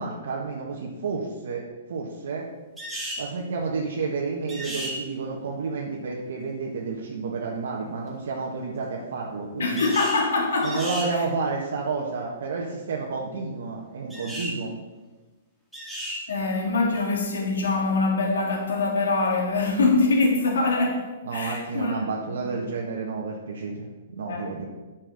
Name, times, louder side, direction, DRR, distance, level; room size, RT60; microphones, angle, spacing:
voice 1, 0.0-2.5 3.2-9.9 10.6-14.7 21.2-24.7, right 4 dB, 75° right, -3 dB, 1.4 m, -30 dB
sound 1, 2.8-3.3 4.5-5.0 9.8-10.2 10.6-11.1 14.1-14.6 15.7-16.2, equal, 5° right, 2.2 m, -33 dB
voice 2, 9.6-10.8 16.3-21.1 21.3-22.0 22.3-22.4 24.2-24.6, left 3 dB, 85° left, 0 dB, 2.0 m, -24 dB
8.2 x 6.4 x 6.4 m, 1.2 s
hypercardioid pair, 140°, 0 cm